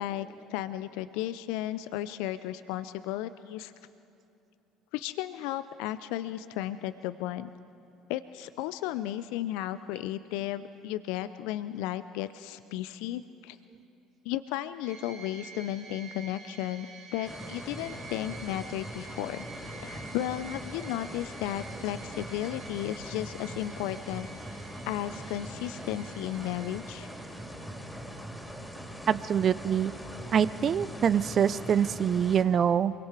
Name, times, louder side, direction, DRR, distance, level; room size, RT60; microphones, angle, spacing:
voice 1, 0.0-3.7 4.9-7.5 8.1-13.6 14.2-19.5 19.8-24.3 24.9-27.1, left 13 dB, 70° left, 13 dB, 0.4 m, -34 dB
sound 1, 14.8-27.7, right 4 dB, 75° right, 3.1 m, -49 dB
sound 2, 17.2-32.4, right 1 dB, 5° left, 3.5 m, -42 dB
voice 2, 29.1-29.9 30.3-32.9, right 8 dB, 45° right, 17 dB, 0.5 m, -25 dB
24.0 x 23.0 x 4.8 m, 2.7 s
hypercardioid pair, 65°, 0 cm